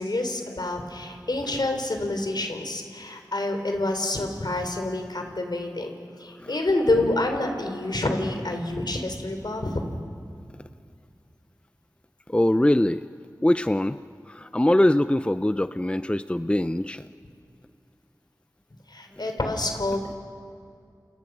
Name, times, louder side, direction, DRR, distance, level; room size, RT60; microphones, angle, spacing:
voice 1, 0.0-5.9 6.2-9.9 18.9-20.1, left 2 dB, 75° left, 5 dB, 3.7 m, -27 dB
voice 2, 12.3-13.0 13.4-14.0 14.3-17.1, left 1 dB, 15° left, 12 dB, 0.6 m, -22 dB
29.0 x 29.0 x 6.2 m, 2.3 s
wide cardioid pair, 45°, 7 cm